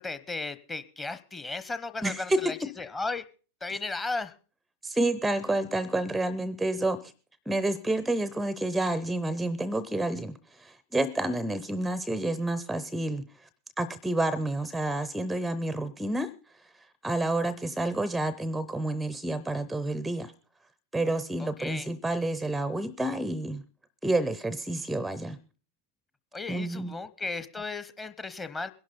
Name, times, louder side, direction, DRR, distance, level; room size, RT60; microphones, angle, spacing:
voice 1, 0.0-3.2 3.6-4.3 21.4-21.9 26.3-28.7, left 3 dB, 15° left, 13 dB, 0.9 m, -35 dB
voice 2, 2.0-2.7 4.8-7.1 7.5-13.5 13.8-20.3 20.9-23.6 24.0-25.4 26.5-27.0, right 2 dB, 5° right, 19 dB, 0.6 m, -29 dB
21.0 x 11.5 x 4.1 m, 0.38 s
figure-of-eight pair, 90°, 0 cm